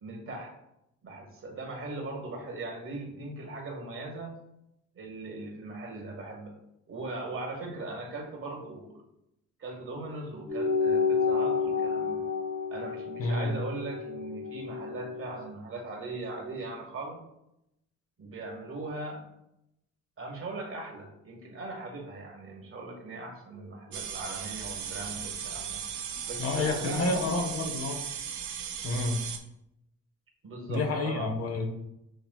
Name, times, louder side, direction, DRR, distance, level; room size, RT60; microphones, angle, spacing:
voice 1, 0.0-0.5 1.0-4.3 4.9-6.6 6.9-9.0 9.6-12.2 12.7-17.2 18.2-19.2 20.2-25.8 26.3-27.5 30.4-31.3, right 2 dB, 45° right, 1 dB, 1.3 m, -39 dB
sound 1, 10.5-15.3, left 5 dB, 70° left, 1.2 m, -30 dB
voice 2, 13.2-13.5 26.4-28.0 28.8-29.2 30.7-31.7, left 3 dB, 50° left, 3 dB, 0.9 m, -29 dB
sound 2, 23.9-29.4, right 8 dB, 70° right, 0.7 m, -37 dB
7.6 x 2.9 x 2.3 m, 0.84 s
cardioid pair, 90°, 30 cm